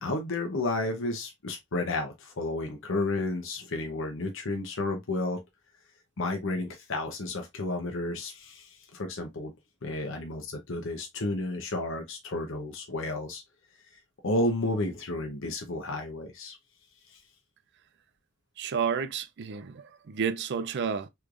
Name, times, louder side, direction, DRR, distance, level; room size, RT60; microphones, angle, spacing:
voice 1, 0.0-5.4 6.2-9.5 9.8-13.4 14.2-16.6 17.1-17.2, left 2 dB, 65° left, 0.8 m, -32 dB
voice 2, 18.6-21.1, right 6 dB, 55° right, 0.4 m, -31 dB
3.4 x 3.2 x 2.5 m
head